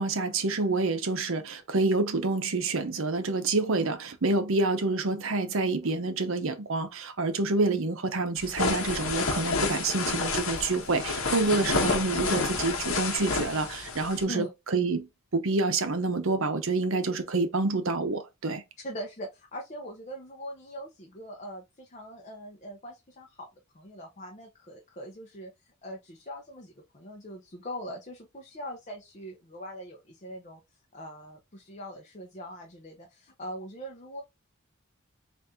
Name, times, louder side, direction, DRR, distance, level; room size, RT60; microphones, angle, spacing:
voice 1, 0.0-18.6, right 3 dB, 65° right, 0.7 m, -28 dB
sound 1, 8.4-14.2, left 3 dB, 65° left, 0.9 m, -29 dB
voice 2, 18.8-23.5 23.7-30.6 30.9-34.2, equal, 35° left, 0.6 m, -41 dB
4.1 x 2.6 x 3.5 m
head